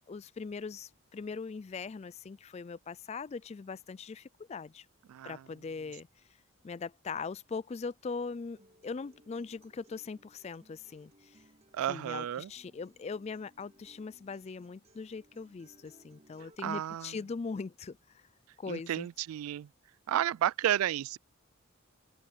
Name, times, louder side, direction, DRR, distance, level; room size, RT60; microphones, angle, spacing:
voice 1, 0.1-4.9 5.2-6.1 6.6-11.4 11.9-18.2 18.6-19.1, left 4 dB, 30° left, 0.3 m, -41 dB
voice 2, 5.1-5.4 11.7-12.5 16.6-17.2 18.7-19.7 20.1-21.2, right 11 dB, 80° right, 0.3 m, -32 dB
Acoustic guitar, 8.6-16.5, right 1 dB, 30° right, 5.6 m, -63 dB
open air
head